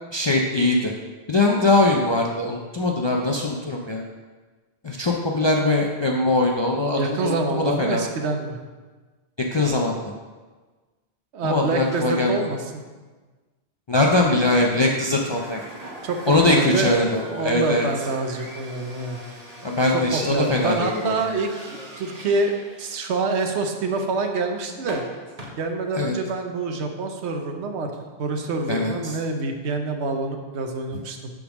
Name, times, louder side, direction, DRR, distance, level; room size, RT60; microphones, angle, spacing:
voice 1, 0.1-0.9 1.3-4.0 4.8-8.0 9.5-10.1 11.4-12.5 13.9-15.6 16.3-17.9 19.6-21.2 26.0-26.1 28.7-29.1, left 2 dB, 35° left, -1 dB, 0.4 m, -21 dB
voice 2, 7.0-8.6 11.3-12.8 16.0-19.2 19.9-22.5 22.8-25.0 25.6-27.9 28.2-31.3, right 3 dB, 85° right, 4 dB, 1.1 m, -26 dB
sound 1, 15.2-25.5, right 1 dB, 35° right, 1.2 m, -41 dB
7.1 x 3.8 x 6.0 m, 1.3 s
omnidirectional pair, 1.1 m